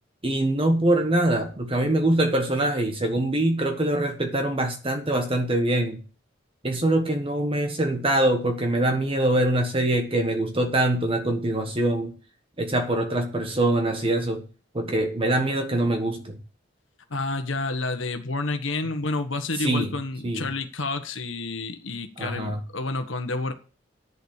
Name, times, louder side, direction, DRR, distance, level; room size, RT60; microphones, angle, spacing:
voice 1, 0.2-6.0 6.6-12.2 12.6-14.5 14.7-16.4 19.6-19.9 20.2-20.5 22.2-22.6, right 1 dB, 30° right, 1.4 m, -24 dB
voice 2, 17.1-23.5, left 3 dB, 85° left, 1.4 m, -29 dB
10.5 x 7.1 x 6.6 m
head